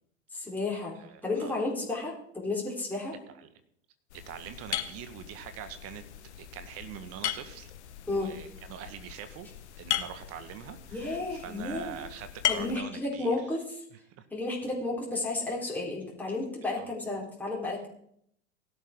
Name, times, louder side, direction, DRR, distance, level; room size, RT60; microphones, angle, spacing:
voice 1, 0.3-0.9 1.2-3.1 8.1-8.3 10.9-12.0 12.5-13.8 14.3-17.9, left 2 dB, 5° left, -4 dB, 4.2 m, -32 dB
voice 2, 1.0-1.6 3.4-3.5 4.1-6.0 6.4-7.7 8.1-9.5 9.8-13.4 14.2-14.3 16.8-16.9, right 9 dB, 40° right, 10 dB, 1.7 m, -43 dB
sound 1, 4.1-12.8, left 11 dB, 60° left, 1.3 m, -37 dB
17.5 x 12.0 x 3.9 m, 0.69 s
figure-of-eight pair, 90°, 38 cm